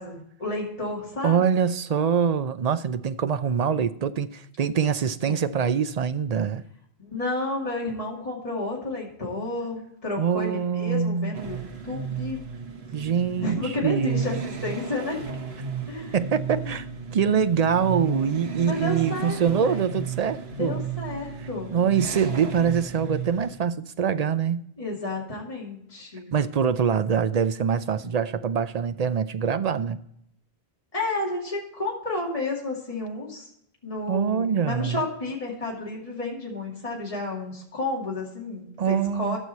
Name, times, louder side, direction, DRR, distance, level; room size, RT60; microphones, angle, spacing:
voice 1, 0.0-1.5 5.3-5.4 7.0-11.6 11.8-12.4 13.4-15.2 15.9-16.2 16.6-16.7 18.7-19.9 20.6-21.7 24.8-26.3 28.0-28.2 30.9-33.5 33.8-39.4, left 2 dB, 35° left, 2.5 m, -31 dB
voice 2, 1.2-6.6 10.2-11.3 12.9-14.4 16.1-16.8 17.1-20.8 21.7-24.6 26.3-30.0 34.1-35.0 38.8-39.4, right 7 dB, 50° right, 0.5 m, -24 dB
sound 1, 11.3-23.6, right 6 dB, 70° right, 1.4 m, -34 dB
14.0 x 6.4 x 4.1 m
omnidirectional pair, 1.1 m